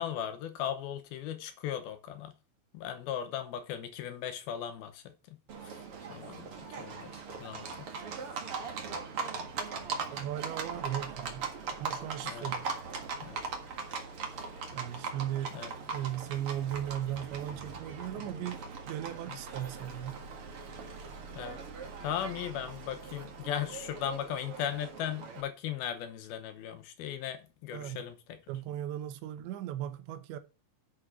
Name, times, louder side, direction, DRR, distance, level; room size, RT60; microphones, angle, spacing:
voice 1, 0.0-2.4 2.7-5.8 6.1-7.9 12.2-12.5 13.2-13.4 15.5-15.7 19.3-19.4 21.4-21.6 22.0-28.4, left 9 dB, 70° left, 2.5 m, -37 dB
Livestock farm animals working animals, 5.5-25.4, right 5 dB, 50° right, 1.7 m, -40 dB
voice 2, 10.1-11.5 11.8-12.7 14.7-15.6 15.9-18.6 18.9-20.2 27.7-28.0 28.5-30.4, right 11 dB, 80° right, 3.4 m, -37 dB
11.5 x 6.4 x 4.8 m
omnidirectional pair, 5.1 m